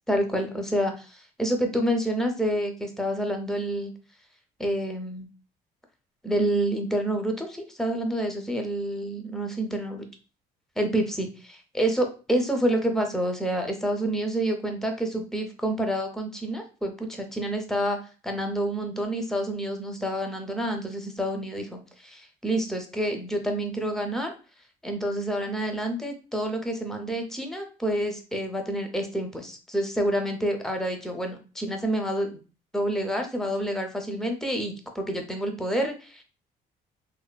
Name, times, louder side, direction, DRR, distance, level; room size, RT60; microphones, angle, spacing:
voice 1, 0.1-3.9 4.6-5.3 6.2-10.1 10.8-18.0 18.2-24.3 24.8-32.4 32.7-36.2, right 1 dB, 5° left, 4 dB, 0.5 m, -28 dB
3.2 x 2.1 x 2.2 m, 0.34 s
cardioid pair, 110°, 17 cm